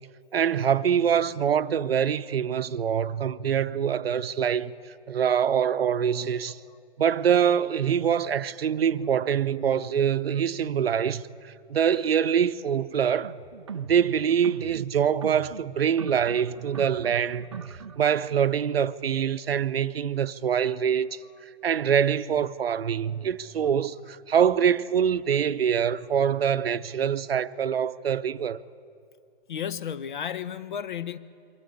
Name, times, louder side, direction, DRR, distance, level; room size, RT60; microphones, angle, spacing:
voice 1, 0.3-4.7 5.1-6.6 7.0-13.4 13.7-17.6 18.0-21.2 21.6-28.6, right 8 dB, 85° right, 0.8 m, -24 dB
sound 1, 13.2-18.3, right 6 dB, 30° right, 0.4 m, -41 dB
voice 2, 29.5-31.2, left 8 dB, 55° left, 0.9 m, -33 dB
24.0 x 13.0 x 8.5 m
hypercardioid pair, 165°, 29 cm